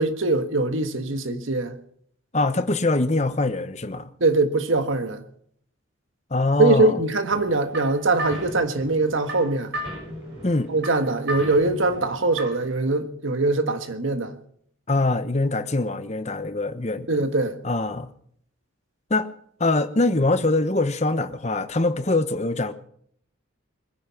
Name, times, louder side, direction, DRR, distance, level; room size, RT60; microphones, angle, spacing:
voice 1, 0.0-1.8 4.2-5.2 6.6-9.7 10.7-14.3 17.1-17.6, right 2 dB, 75° right, 1.6 m, -22 dB
voice 2, 2.3-4.1 6.3-7.0 10.4-10.7 14.9-17.1 17.6-18.1 19.1-19.3 19.6-22.7, left 2 dB, 35° left, 0.9 m, -23 dB
sound 1, 7.3-12.7, equal, 55° right, 6.5 m, -36 dB
22.5 x 10.5 x 5.9 m
head